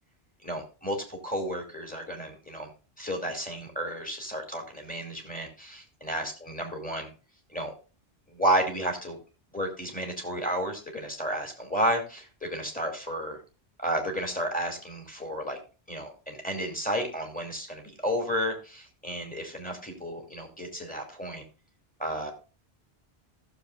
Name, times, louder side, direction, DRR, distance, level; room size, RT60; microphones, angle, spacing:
voice 1, 0.4-2.7 3.0-7.1 7.5-7.7 8.3-9.2 9.5-13.4 13.8-15.6 15.9-21.4 22.0-22.3, right 1 dB, 10° left, 1 dB, 2.5 m, -32 dB
15.5 x 7.0 x 2.5 m, 0.32 s
omnidirectional pair, 1.0 m